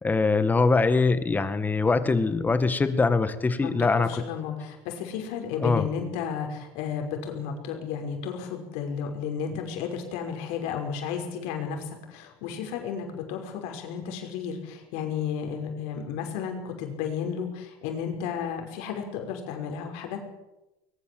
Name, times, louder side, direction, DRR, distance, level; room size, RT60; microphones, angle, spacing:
voice 1, 0.0-4.1 5.6-5.9, left 3 dB, 15° left, 11 dB, 1.8 m, -23 dB
voice 2, 3.6-20.2, left 7 dB, 70° left, 3 dB, 5.7 m, -33 dB
21.5 x 21.0 x 7.9 m, 1.0 s
cardioid pair, 135°, 12 cm